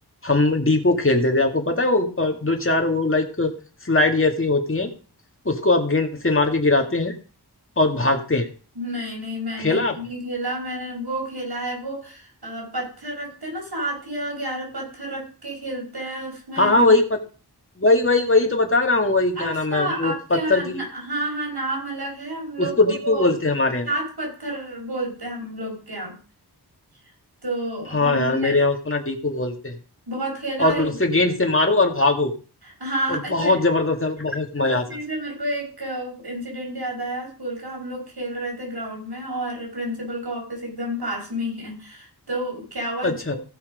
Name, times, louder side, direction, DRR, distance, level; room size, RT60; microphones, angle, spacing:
voice 1, 0.2-3.5 3.8-4.9 5.5-7.1 7.8-8.5 9.6-9.9 16.6-17.2 17.8-20.8 22.6-23.9 27.9-29.7 30.6-32.3 33.1-34.8 43.0-43.4, left 2 dB, 30° left, 3 dB, 1.9 m, -20 dB
voice 2, 8.8-16.9 19.4-23.3 23.8-26.1 27.4-28.6 30.1-31.0 32.6-33.6 34.6-43.4, right 1 dB, 70° right, 0 dB, 5.5 m, -30 dB
16.0 x 5.8 x 5.1 m, 0.37 s
wide cardioid pair, 55°, 40 cm